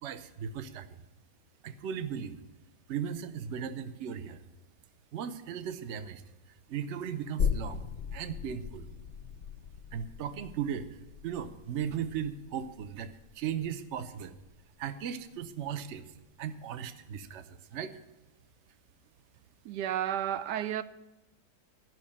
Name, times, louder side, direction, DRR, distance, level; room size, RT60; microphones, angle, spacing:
voice 1, 0.0-0.9 1.6-2.4 2.9-4.4 5.1-6.2 6.7-7.8 8.1-8.9 9.9-10.9 11.2-14.4 14.8-16.1 16.4-17.9, right 8 dB, 50° right, 0.9 m, -37 dB
sound 1, 7.4-14.7 15.0-15.1, left 7 dB, 60° left, 0.7 m, -38 dB
voice 2, 19.6-20.8, right 11 dB, 85° right, 1.2 m, -32 dB
13.0 x 6.1 x 8.6 m
omnidirectional pair, 1.8 m